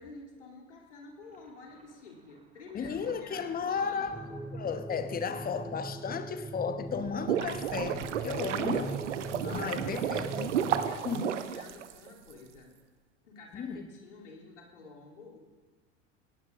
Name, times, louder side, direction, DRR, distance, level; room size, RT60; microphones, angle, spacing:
voice 1, 0.0-4.4 9.2-12.7 13.2-15.4, left 4 dB, 70° left, 3.0 m, -50 dB
Thunder, 1.2-7.0, right 3 dB, 20° right, 2.5 m, -55 dB
voice 2, 2.7-4.2 4.5-9.0 9.4-10.6 11.0-11.3 13.5-13.9, left 6 dB, 25° left, 1.1 m, -34 dB
sound 1, 4.1-11.0, right 2 dB, 5° right, 0.7 m, -41 dB
sound 2, 6.9-12.3, right 9 dB, 70° right, 0.9 m, -32 dB
19.0 x 18.0 x 2.5 m
figure-of-eight pair, 75°, 37 cm